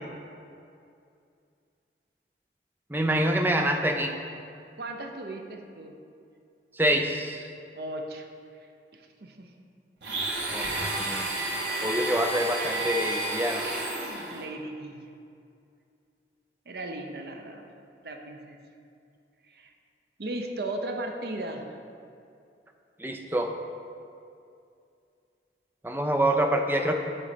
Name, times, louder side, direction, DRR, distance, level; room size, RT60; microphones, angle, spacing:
voice 1, 2.9-4.1 6.8-7.5 10.5-11.4 11.8-13.7 23.0-23.5 25.8-26.9, right 1 dB, 10° right, 4 dB, 0.4 m, -26 dB
voice 2, 4.7-6.0 7.7-8.3 8.9-9.5 14.3-15.0 16.7-17.7 18.0-18.6 19.5-19.7 20.2-21.8, right 2 dB, 65° right, 4 dB, 0.7 m, -36 dB
Domestic sounds home sounds, 10.0-14.4, right 2 dB, 80° right, 1.4 m, -31 dB
8.9 x 4.2 x 5.1 m, 2.5 s
head